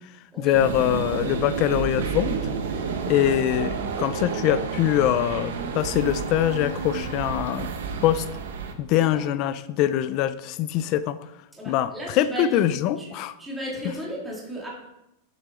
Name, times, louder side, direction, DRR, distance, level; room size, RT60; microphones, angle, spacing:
voice 1, 0.4-2.4 3.1-7.7 8.0-8.2 8.8-11.2 11.7-13.3, left 11 dB, 35° left, 13 dB, 0.4 m, -23 dB
sound 1, 0.5-8.7, right 5 dB, 85° right, 1.4 m, -30 dB
voice 2, 8.9-9.3 11.5-12.6 13.0-14.7, equal, 5° right, -5 dB, 2.4 m, -35 dB
12.0 x 8.2 x 3.8 m, 0.88 s
supercardioid pair, 170°, 0 cm